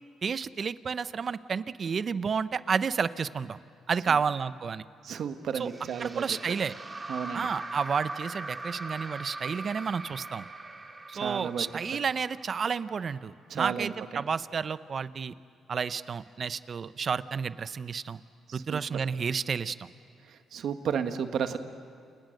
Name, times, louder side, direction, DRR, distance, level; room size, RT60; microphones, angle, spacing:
voice 1, 0.2-3.6 3.9-4.8 5.5-5.7 6.0-6.7 7.3-10.5 11.1-15.3 15.7-18.2 18.5-19.9, right 6 dB, 45° right, 14 dB, 0.8 m, -31 dB
voice 2, 5.0-6.4 7.1-7.5 11.1-11.6 13.5-14.2 18.5-18.8 20.5-21.6, right 7 dB, 65° right, 8 dB, 1.4 m, -33 dB
sound 1, 5.6-12.9, right 2 dB, 25° right, 2.2 m, -41 dB
29.5 x 28.5 x 6.6 m, 2.3 s
cardioid pair, 90°, 0 cm